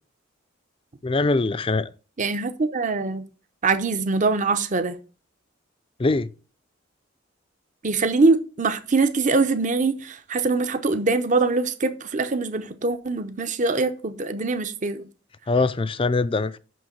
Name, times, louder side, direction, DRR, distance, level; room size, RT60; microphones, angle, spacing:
voice 1, 1.0-1.9 6.0-6.3 15.5-16.6, left 3 dB, 30° left, 0.5 m, -22 dB
voice 2, 2.2-3.2 3.6-5.0 7.8-15.0, right 3 dB, 40° right, 0.8 m, -23 dB
6.2 x 6.1 x 7.2 m
head